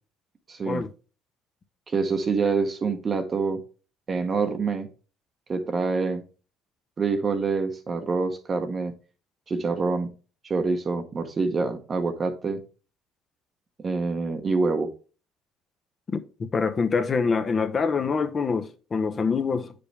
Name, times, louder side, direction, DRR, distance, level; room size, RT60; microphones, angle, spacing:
voice 1, 0.5-0.8 1.9-3.6 4.1-4.9 5.5-6.2 7.0-8.9 9.5-10.1 10.4-12.6 13.8-14.9, right 4 dB, 30° right, 0.9 m, -26 dB
voice 2, 16.1-19.7, left 5 dB, 30° left, 0.8 m, -25 dB
8.4 x 5.2 x 3.3 m
cardioid pair, 115°, 0 cm